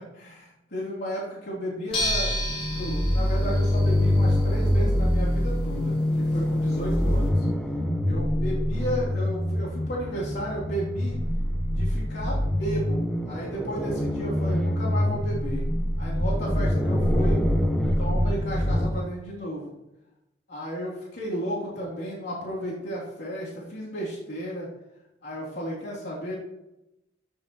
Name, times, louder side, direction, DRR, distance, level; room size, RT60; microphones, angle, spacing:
voice 1, 0.1-7.5 8.0-11.2 11.7-15.6 16.0-17.4 18.0-19.7 20.5-24.7 25.2-26.3, equal, 70° left, -7 dB, 3.2 m, -33 dB
sound 1, 1.9-7.3, left 1 dB, 30° left, 3.4 m, -34 dB
sound 2, 2.0-18.9, left 1 dB, 5° left, 0.9 m, -25 dB
14.5 x 7.1 x 3.1 m, 0.92 s
head